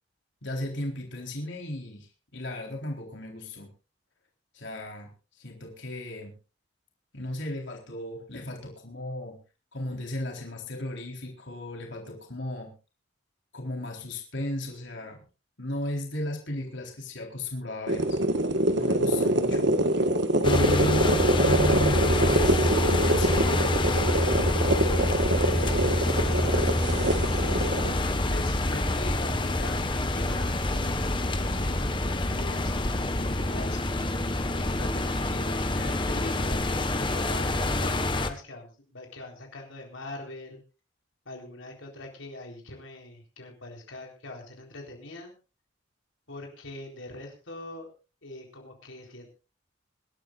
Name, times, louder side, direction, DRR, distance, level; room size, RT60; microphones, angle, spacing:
voice 1, 0.4-3.7 4.5-5.1 5.3-6.3 7.1-9.4 9.7-12.7 13.5-15.2 15.6-18.5 18.7-19.7 20.4-22.7 23.1-23.6 24.6-27.0, left 1 dB, 65° left, 1 dB, 4.0 m, -35 dB
sound 1, 17.9-27.9, right 1 dB, 60° right, 1.5 m, -25 dB
sound 2, 20.4-38.3, left 1 dB, 25° left, 1.3 m, -27 dB
voice 2, 28.3-33.8 34.5-40.6 41.3-45.4 46.3-47.9 48.2-49.3, left 2 dB, 80° left, 1 dB, 4.0 m, -42 dB
25.5 x 12.5 x 2.5 m, 0.32 s
head